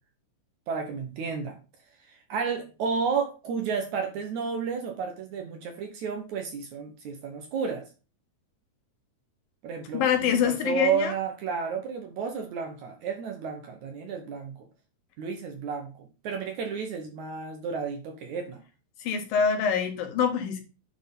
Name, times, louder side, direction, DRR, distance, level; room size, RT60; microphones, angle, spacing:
voice 1, 0.7-1.5 2.3-7.8 9.6-14.5 15.2-18.6, right 6 dB, 65° right, 4 dB, 2.2 m, -32 dB
voice 2, 9.9-11.1 19.0-20.6, left 7 dB, 90° left, 5 dB, 3.2 m, -25 dB
9.5 x 4.5 x 5.4 m, 0.33 s
omnidirectional pair, 3.9 m